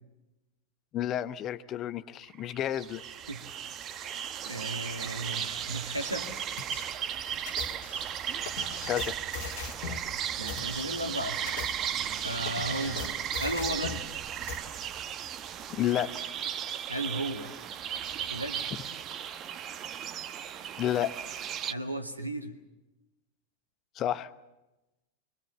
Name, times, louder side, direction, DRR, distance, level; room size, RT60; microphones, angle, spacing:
voice 1, 0.9-3.0 8.9-9.2 15.7-16.1 20.8-21.1 24.0-24.3, left 11 dB, 30° left, 13 dB, 1.0 m, -30 dB
sound 1, 2.2-21.7, right 9 dB, 30° right, 1.2 m, -36 dB
voice 2, 3.9-6.3 10.4-11.6 12.2-14.1 16.9-17.5 18.3-18.6 21.7-22.5, right 1 dB, 85° right, 5 dB, 2.3 m, -35 dB
sound 2, 6.6-6.8 7.5-10.1 10.5-10.8 11.3-14.1 14.5-14.6, left 8 dB, 55° left, 1.8 m, -40 dB
25.5 x 24.0 x 7.4 m, 1.0 s
figure-of-eight pair, 90°, 0 cm